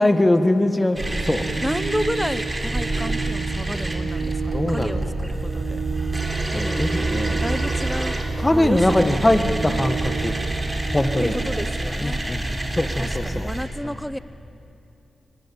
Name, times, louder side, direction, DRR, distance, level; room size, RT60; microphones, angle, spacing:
voice 1, 0.0-1.4 4.5-5.1 6.5-7.4 8.4-10.3 10.9-11.3 12.0-13.5 13.8-14.0, left 1 dB, 20° left, 9 dB, 1.6 m, -22 dB
sound 1, 1.0-13.6, right 1 dB, 25° right, 3.7 m, -27 dB
Organ, 1.0-11.9, right 6 dB, 75° right, 1.0 m, -32 dB
voice 2, 1.6-5.8 6.5-6.8 7.4-8.2 8.5-9.2 11.2-12.2 13.0-14.2, equal, 5° left, 14 dB, 0.9 m, -30 dB
23.5 x 19.0 x 8.9 m, 2.7 s
cardioid pair, 50°, 0 cm